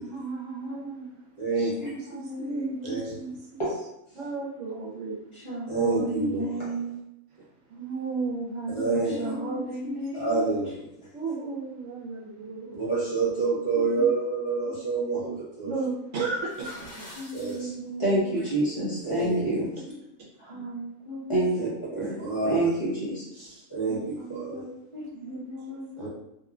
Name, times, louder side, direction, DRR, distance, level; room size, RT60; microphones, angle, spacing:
voice 1, 0.0-1.2 1.6-3.6 4.1-5.2 7.3-7.4 7.7-10.3 11.1-12.9 15.6-17.2 20.2-20.7 23.3-23.7 25.1-25.5 26.0-26.1, right 4 dB, 65° right, -4 dB, 1.0 m, -35 dB
voice 2, 1.4-1.9 2.8-3.0 3.6-3.7 5.7-6.7 8.7-9.1 10.1-11.1 12.8-15.7 17.3-17.7 18.0-19.7 21.3-24.6 26.0-26.1, right 3 dB, 30° left, -8 dB, 0.7 m, -27 dB
voice 3, 2.1-3.0 5.4-6.9 9.1-10.5 15.1-15.3 17.2-18.1 20.4-21.4 23.9-25.9, right 1 dB, 30° right, -10 dB, 0.6 m, -36 dB
sound 1, 16.4-17.6, equal, 65° left, 1.2 m, -45 dB
2.9 x 2.2 x 2.4 m, 0.80 s
omnidirectional pair, 1.5 m